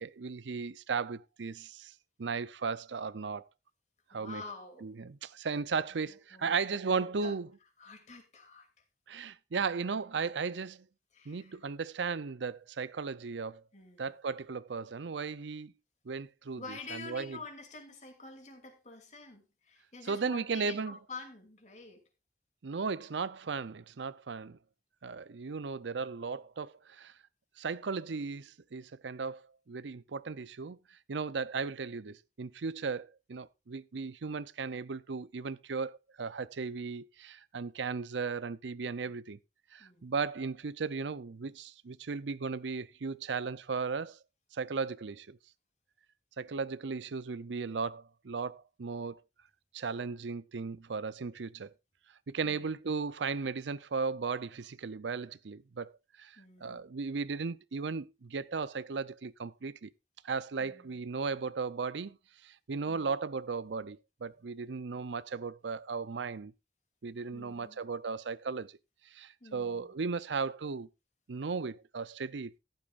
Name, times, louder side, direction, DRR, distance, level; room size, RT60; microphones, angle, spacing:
voice 1, 0.0-1.9 2.2-3.4 4.1-4.4 4.8-7.5 9.1-10.8 11.3-13.6 14.0-15.7 16.1-16.6 16.9-17.4 20.0-21.0 22.6-24.6 25.0-27.1 27.6-29.4 29.7-30.8 31.1-39.4 39.7-44.2 44.5-45.4 46.4-49.2 49.7-51.7 52.3-55.9 56.2-59.9 60.2-62.2 62.4-66.5 67.0-68.7 69.1-70.9 71.3-72.5, right 5 dB, 90° right, 0.6 m, -36 dB
voice 2, 4.1-4.9 6.1-7.4 7.8-8.7 11.1-11.6 13.7-14.1 16.6-22.0 39.8-40.1 52.4-52.7 56.4-56.8 60.6-61.0 62.9-63.1 67.3-67.8 69.4-69.9, left 3 dB, 40° left, 2.8 m, -48 dB
14.0 x 12.0 x 2.5 m
head